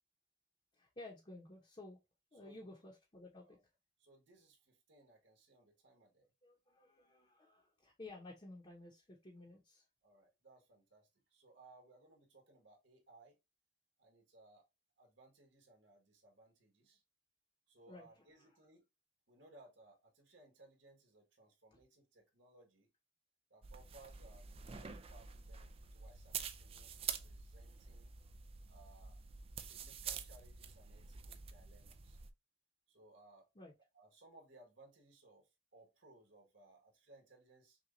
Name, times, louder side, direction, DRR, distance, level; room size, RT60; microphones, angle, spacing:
voice 1, 0.7-2.0 2.3-3.6 6.4-9.8 17.9-18.1 18.4-18.5 21.7-21.8 33.5-33.7, left 2 dB, 30° left, -1 dB, 0.9 m, -54 dB
voice 2, 2.3-2.7 3.4-3.6 4.0-6.3 10.0-13.4 14.0-14.6 15.0-17.0 17.7-18.8 19.3-22.9 23.5-28.1 28.7-29.2 29.6-32.2 32.9-33.5 33.9-37.8, right 2 dB, 85° right, 1 dB, 1.7 m, -64 dB
sound 1, 23.6-32.3, right 7 dB, 30° right, 0.4 m, -47 dB
5.9 x 2.4 x 2.6 m, 0.23 s
head